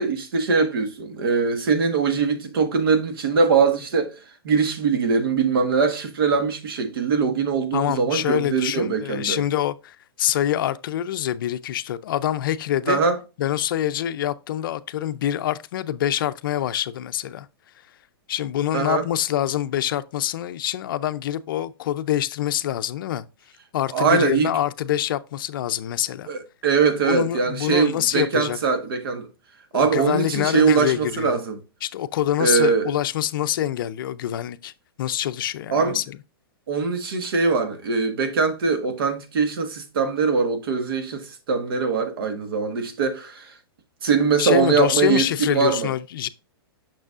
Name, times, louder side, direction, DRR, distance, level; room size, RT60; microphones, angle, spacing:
voice 1, 0.0-9.4 12.9-13.2 18.7-19.0 23.9-24.5 26.3-29.3 29.7-31.6 32.4-32.9 35.7-36.0 36.7-43.5 44.0-45.9, right 5 dB, 65° right, 1.5 m, -22 dB
voice 2, 7.7-13.0 13.4-17.5 18.3-23.2 23.7-26.3 27.0-28.6 29.7-31.4 31.8-34.7 35.0-36.2 44.4-46.3, left 11 dB, 60° left, 0.5 m, -25 dB
6.3 x 6.1 x 2.4 m
hypercardioid pair, 160°, 13 cm